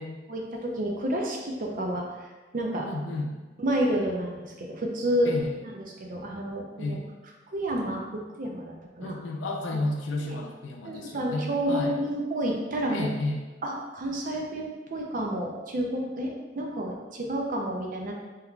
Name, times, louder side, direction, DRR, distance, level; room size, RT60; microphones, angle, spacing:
voice 1, 0.3-2.3 2.5-2.9 3.6-5.3 5.6-7.0 7.5-9.1 9.7-9.8 10.8-13.1 13.6-18.1, right 1 dB, 45° right, 0 dB, 0.5 m, -30 dB
voice 2, 2.8-3.3 5.3-5.5 6.8-7.0 9.0-12.0 12.9-13.4, left 2 dB, 90° left, 2 dB, 0.5 m, -32 dB
3.6 x 2.9 x 2.3 m, 1.2 s
head